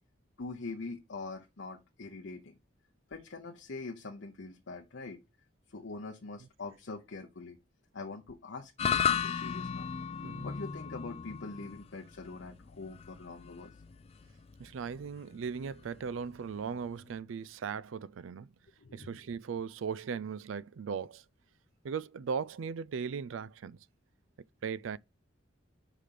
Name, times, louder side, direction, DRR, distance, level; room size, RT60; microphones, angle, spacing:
voice 1, 0.4-2.6 3.1-5.2 5.7-7.6 7.9-9.9 10.4-13.8 18.8-19.1, left 3 dB, 65° left, 0.8 m, -43 dB
sound 1, 8.8-17.2, left 7 dB, 30° left, 0.4 m, -36 dB
voice 2, 14.6-18.5 18.9-21.2 21.8-23.8 24.6-25.0, right 6 dB, 90° right, 0.4 m, -38 dB
5.0 x 5.0 x 5.8 m
head